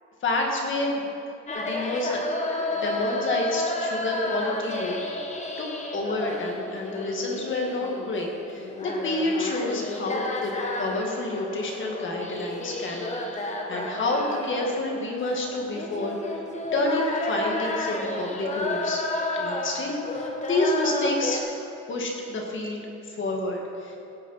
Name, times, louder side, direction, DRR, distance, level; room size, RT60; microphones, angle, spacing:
voice 1, 0.2-1.1 1.5-2.2 2.7-5.0 5.6-5.7 5.9-16.4 16.7-19.0 19.3-24.0, left 2 dB, 40° left, 0 dB, 1.8 m, -29 dB
sound 1, 1.5-21.4, left 2 dB, 25° left, 1.1 m, -31 dB
17.0 x 6.3 x 5.5 m, 2.6 s
cardioid pair, 175°, 30 cm